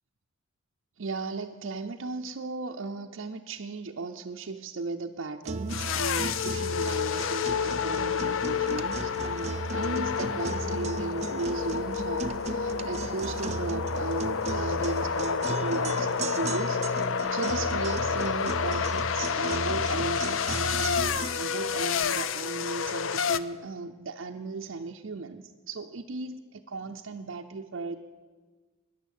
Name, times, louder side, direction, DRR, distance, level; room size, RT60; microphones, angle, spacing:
voice 1, 1.0-28.0, right 3 dB, 70° right, 1 dB, 0.6 m, -36 dB
sound 1, 5.4-21.4, right 3 dB, 35° right, 0.5 m, -36 dB
sound 2, 5.7-23.4, left 7 dB, 75° left, 0.5 m, -29 dB
13.5 x 10.0 x 8.3 m, 1.4 s
head